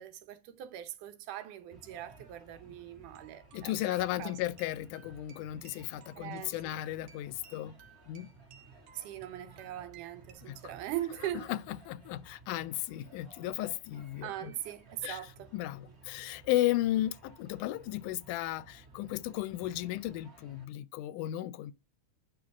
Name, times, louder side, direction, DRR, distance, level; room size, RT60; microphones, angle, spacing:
voice 1, 0.0-4.4 6.2-6.7 8.9-11.5 14.2-15.5, right 12 dB, 90° right, 2.5 m, -41 dB
sound 1, 1.7-20.7, right 3 dB, 25° right, 1.9 m, -57 dB
sound 2, 3.1-10.3, right 8 dB, 70° right, 2.1 m, -59 dB
voice 2, 3.5-7.8 8.1-8.3 10.4-10.6 11.3-11.6 11.9-14.5 15.0-15.2 15.5-21.7, left 15 dB, 85° left, 2.1 m, -34 dB
8.9 x 5.6 x 4.8 m
omnidirectional pair, 3.5 m